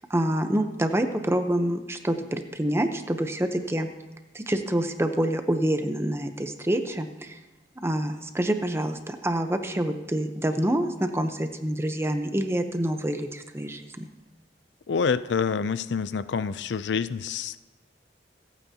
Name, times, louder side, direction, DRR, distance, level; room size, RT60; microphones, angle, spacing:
voice 1, 0.1-3.9 4.3-7.4 7.8-14.1, right 1 dB, 15° right, 7 dB, 0.8 m, -27 dB
voice 2, 14.9-17.6, left 5 dB, 80° left, 14 dB, 0.4 m, -27 dB
26.5 x 9.1 x 2.8 m, 1.1 s
head